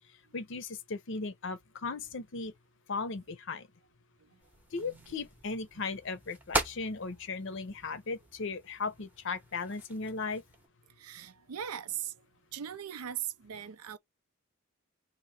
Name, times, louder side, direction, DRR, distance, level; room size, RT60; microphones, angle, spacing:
voice 1, 0.3-2.5 2.9-3.7 4.7-10.4, left 4 dB, 55° left, 0.6 m, -37 dB
sound 1, 4.4-10.7, right 2 dB, 10° right, 0.7 m, -40 dB
voice 2, 4.8-5.2 5.7-5.9 11.0-12.3 12.5-14.0, right 10 dB, 90° right, 0.5 m, -40 dB
2.9 x 2.6 x 4.1 m
head